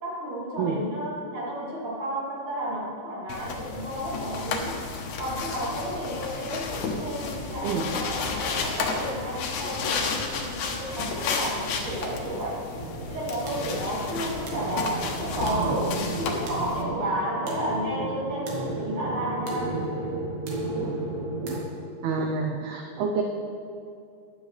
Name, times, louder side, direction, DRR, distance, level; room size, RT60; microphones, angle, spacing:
voice 1, 0.0-4.8 5.2-12.6 13.1-19.8, equal, 35° right, -6 dB, 3.2 m, -32 dB
sound 1, 3.3-16.8, left 4 dB, 85° left, 1.6 m, -32 dB
sound 2, 12.7-21.6, right 3 dB, 60° right, 3.0 m, -34 dB
voice 2, 22.0-23.2, right 5 dB, 80° right, 2 dB, 2.4 m, -28 dB
15.5 x 11.0 x 3.3 m, 2.6 s
omnidirectional pair, 5.0 m